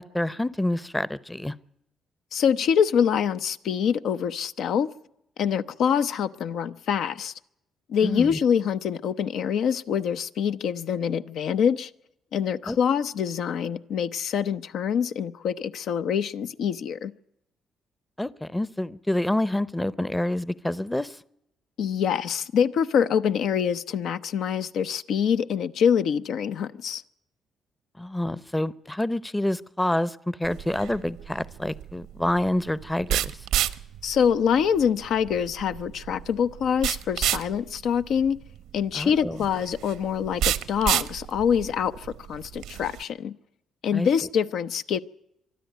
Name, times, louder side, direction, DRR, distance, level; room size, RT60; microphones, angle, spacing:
voice 1, 0.0-1.5 8.0-8.4 12.7-12.8 18.2-21.2 28.0-33.4 38.9-39.4 43.9-44.1, left 1 dB, 10° left, 0.7 m, -27 dB
voice 2, 2.3-4.9 5.4-7.3 7.9-11.9 12.3-17.1 21.8-27.0 34.0-38.4 38.7-43.3 43.8-45.0, left 7 dB, 75° left, 0.8 m, -25 dB
sound 1, 30.4-43.0, right 12 dB, 90° right, 0.9 m, -31 dB
24.0 x 12.5 x 9.2 m
cardioid pair, 90°, 0 cm